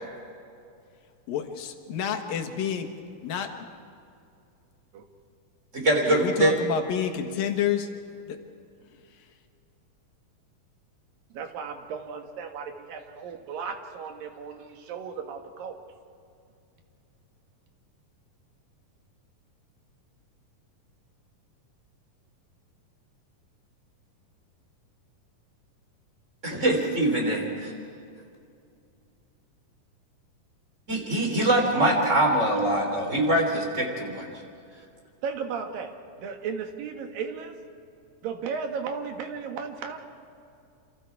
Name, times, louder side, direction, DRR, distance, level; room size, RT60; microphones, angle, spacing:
voice 1, 1.3-2.9 3.2-3.7 6.1-7.9 8.3-8.4, left 8 dB, 80° left, 5 dB, 3.2 m, -29 dB
voice 2, 5.7-6.5 26.4-27.7 30.9-34.3, right 1 dB, 20° right, 1 dB, 3.9 m, -23 dB
voice 3, 11.3-15.8 35.2-35.9 36.2-37.6 38.2-40.0, right 6 dB, 85° right, 5 dB, 3.3 m, -35 dB
28.0 x 27.0 x 4.7 m, 2.4 s
omnidirectional pair, 3.9 m